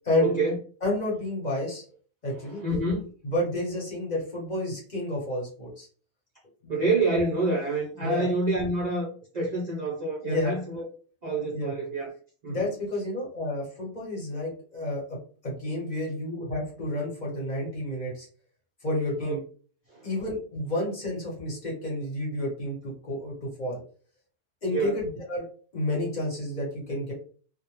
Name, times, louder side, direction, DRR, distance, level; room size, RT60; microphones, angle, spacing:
voice 1, 0.2-0.5 2.3-3.0 6.7-10.8 11.2-12.1 12.4-12.6 19.2-19.4 19.9-20.1 24.7-25.0, right 2 dB, 55° right, -3 dB, 0.5 m, -27 dB
voice 2, 0.8-1.8 2.2-2.6 3.2-5.9 6.6-6.7 8.0-8.3 10.2-10.5 11.5-11.7 12.5-15.0 15.4-18.3 18.8-19.4 20.0-23.8 24.6-25.5 25.7-27.1, left 1 dB, 40° left, -3 dB, 0.9 m, -30 dB
2.2 x 2.0 x 3.0 m, 0.42 s
omnidirectional pair, 1.3 m